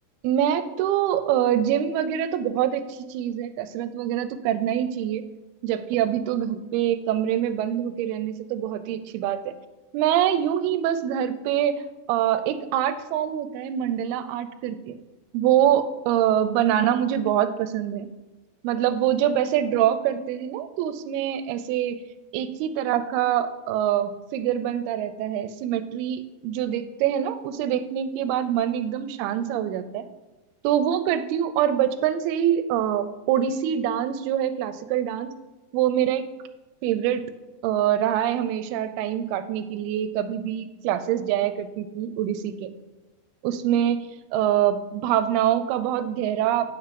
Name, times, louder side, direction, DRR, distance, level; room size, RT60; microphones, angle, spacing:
voice 1, 0.2-5.2 5.6-9.5 9.9-11.8 12.1-15.0 15.3-18.1 18.6-22.0 22.3-30.1 30.6-35.3 35.7-36.2 36.8-37.3 37.6-42.7 43.4-46.7, right 10 dB, 90° right, 12 dB, 2.5 m, -25 dB
9.2 x 5.7 x 5.2 m, 1.1 s
omnidirectional pair, 4.4 m